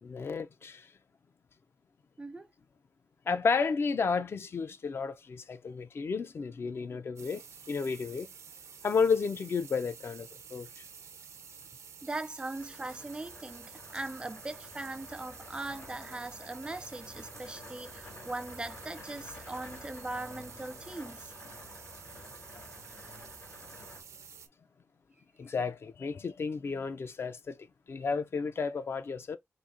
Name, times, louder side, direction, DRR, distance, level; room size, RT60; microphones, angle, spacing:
voice 1, 0.0-0.8 3.3-7.4 7.7-8.3 8.8-10.7 25.4-27.6 27.9-29.4, left 5 dB, 55° left, 0.4 m, -32 dB
voice 2, 2.2-2.5 12.0-21.3, right 2 dB, 20° right, 0.4 m, -40 dB
sound 1, 7.2-24.5, right 7 dB, 85° right, 0.5 m, -50 dB
sound 2, 12.5-24.0, left 2 dB, 80° left, 1.8 m, -50 dB
3.9 x 2.8 x 2.5 m
wide cardioid pair, 100°, 5 cm